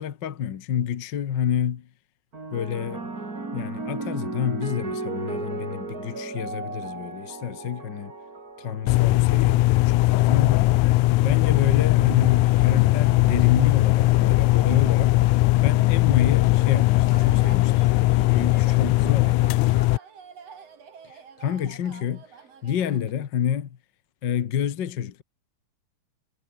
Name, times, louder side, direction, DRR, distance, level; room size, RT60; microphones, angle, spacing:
voice 1, 0.0-1.9 2.5-3.1 3.5-8.1 8.6-10.6 11.2-15.2 15.6-17.9 18.2-19.4 21.0-22.2 22.6-23.7 24.2-25.2, left 9 dB, 55° left, 1.4 m, -28 dB
sound 1, 2.3-10.9 11.8-12.2, right 3 dB, 30° right, 4.4 m, -36 dB
sound 2, 8.9-20.0, left 19 dB, 80° left, 2.0 m, -19 dB
sound 3, 11.5-23.1, right 6 dB, 55° right, 3.9 m, -47 dB
omnidirectional pair, 3.5 m